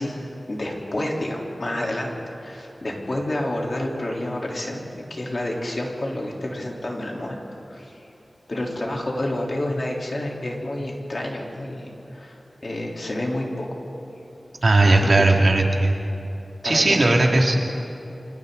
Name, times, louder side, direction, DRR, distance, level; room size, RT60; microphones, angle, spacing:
voice 1, 0.0-4.8 5.1-7.4 7.7-8.1 8.5-13.7 14.8-15.4 16.6-17.2, left 1 dB, 50° left, -2 dB, 3.7 m, -29 dB
voice 2, 14.6-16.1 16.6-17.6, right 2 dB, 55° right, 1 dB, 2.5 m, -17 dB
29.5 x 25.5 x 4.0 m, 2.9 s
wide cardioid pair, 80°, 0 cm